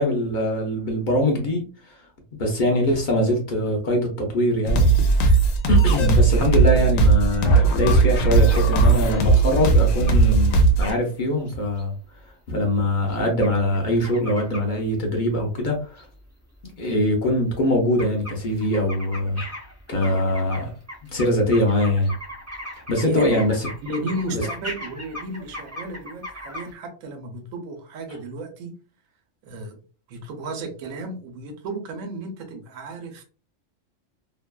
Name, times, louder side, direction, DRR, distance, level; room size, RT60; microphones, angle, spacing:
voice 1, 0.0-2.0 2.4-4.9 5.7-11.9 12.5-16.1 16.8-19.4 19.9-20.7 21.1-22.1 22.9-23.7 24.3-24.4, left 1 dB, 55° left, 1 dB, 0.6 m, -22 dB
sound 1, 4.7-10.9, right 3 dB, 85° left, 1.0 m, -17 dB
sound 2, 8.0-8.1 8.5-8.7 9.7-9.8 10.1-10.2 10.5-11.0 11.5-11.8 13.1-14.7 16.0-16.1 16.6-16.7 17.0-17.1 17.4-17.7 18.0-26.7, left 1 dB, 15° right, 0.5 m, -38 dB
voice 2, 23.8-28.7 29.4-29.8 30.1-33.2, right 2 dB, 90° right, 5 dB, 1.0 m, -33 dB
2.6 x 2.2 x 2.2 m, 0.38 s
omnidirectional pair, 1.3 m